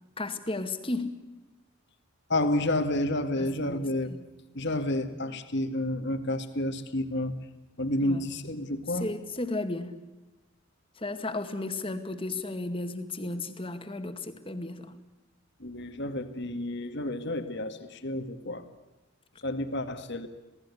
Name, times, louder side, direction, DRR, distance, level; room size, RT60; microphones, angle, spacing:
voice 1, 0.2-1.2 3.4-4.2 8.0-8.2 8.9-10.0 11.0-14.9, left 2 dB, 25° left, 8 dB, 2.1 m, -34 dB
voice 2, 2.3-4.1 4.5-7.3 7.8-9.1 15.6-18.6 19.4-20.3, left 1 dB, 55° left, 8 dB, 2.0 m, -30 dB
27.5 x 18.5 x 8.4 m, 1.1 s
head